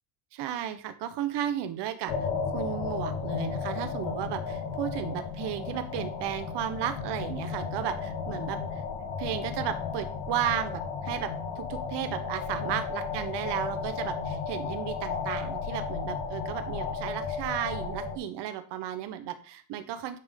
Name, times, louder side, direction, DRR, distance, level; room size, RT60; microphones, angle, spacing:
voice 1, 0.3-8.8 9.2-20.2, right 11 dB, 75° right, 10 dB, 1.2 m, -34 dB
sound 1, 2.1-18.2, left 5 dB, 85° left, 1.9 m, -34 dB
10.5 x 5.3 x 3.8 m, 0.43 s
cardioid pair, 120°, 42 cm